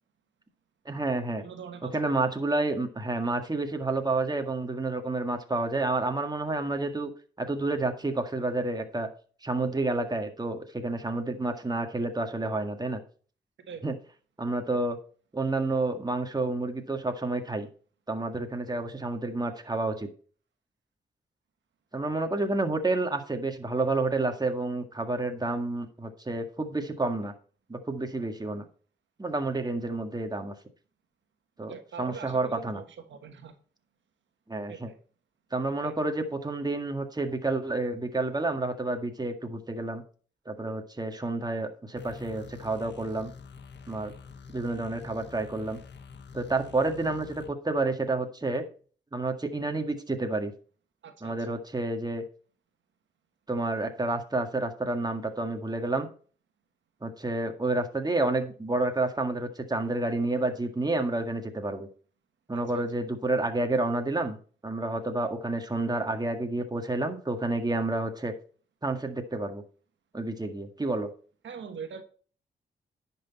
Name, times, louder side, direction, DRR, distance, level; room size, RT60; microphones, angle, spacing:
voice 1, 0.9-1.4 1.9-7.1 7.4-9.1 9.4-13.0 13.8-14.0 14.4-15.0 15.3-17.7 18.1-20.1 21.9-27.3 27.7-28.6 29.2-30.5 31.6-32.8 34.5-34.9 35.5-40.0 40.5-43.3 43.9-44.1 44.5-45.8 46.3-48.6 49.1-50.5 51.2-52.2 53.5-56.1 57.0-61.9 62.5-64.4 64.6-68.3 68.8-69.6 70.1-71.1, right 2 dB, 20° right, 5 dB, 1.8 m, -29 dB
voice 2, 1.4-2.2 13.6-13.8 31.7-32.8 33.1-33.5 34.7-35.0 35.8-35.9 51.0-51.3 62.7-62.8 71.4-72.0, right 6 dB, 80° right, 7 dB, 1.4 m, -42 dB
sound 1, 42.0-47.5, left 5 dB, 70° left, 1.2 m, -47 dB
10.5 x 6.1 x 4.3 m, 0.41 s
cardioid pair, 60°, 19 cm